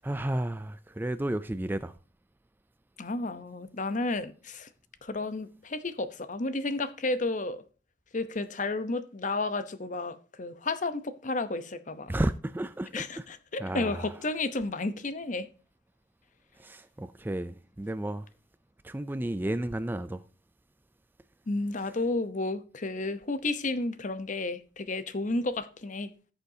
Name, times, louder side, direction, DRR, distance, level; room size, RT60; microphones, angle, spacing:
voice 1, 0.0-1.9 12.1-13.2 13.6-14.1 16.6-18.3 18.8-20.2, right 1 dB, 10° right, 0.3 m, -32 dB
voice 2, 3.0-4.7 5.0-7.6 8.1-12.1 12.9-15.5 21.5-26.1, left 2 dB, 40° left, 0.8 m, -32 dB
16.0 x 6.6 x 2.7 m
head